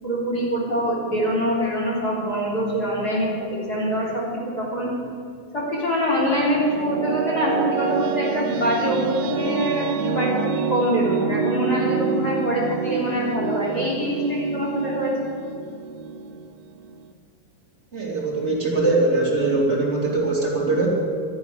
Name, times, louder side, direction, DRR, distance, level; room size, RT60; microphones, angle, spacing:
voice 1, 0.0-4.9 5.5-15.1, equal, 25° left, -5 dB, 3.6 m, -24 dB
sound 1, 6.1-17.1, right 5 dB, 85° right, 2.7 m, -27 dB
voice 2, 17.9-20.9, right 2 dB, 20° right, -3 dB, 2.2 m, -21 dB
13.0 x 10.5 x 9.7 m, 2.4 s
omnidirectional pair, 4.4 m